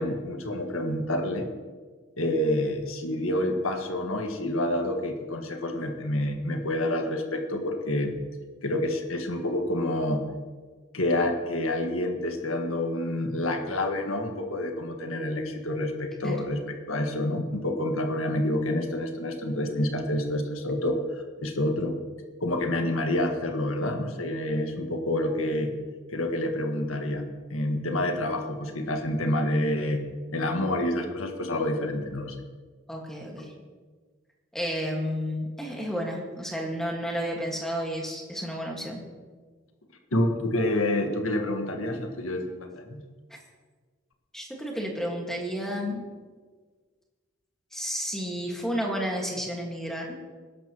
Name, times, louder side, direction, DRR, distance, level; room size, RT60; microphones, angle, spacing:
voice 1, 0.0-1.5 2.2-8.2 8.6-10.2 10.9-16.6 16.9-21.0 21.4-21.9 22.4-25.8 26.1-27.2 27.5-30.0 30.3-32.4 40.1-43.0, left 1 dB, 90° left, 3 dB, 1.7 m, -28 dB
voice 2, 32.9-33.5 34.5-39.0 44.3-46.1 47.7-50.1, equal, ahead, -1 dB, 1.8 m, -31 dB
20.5 x 11.5 x 3.1 m, 1.5 s
head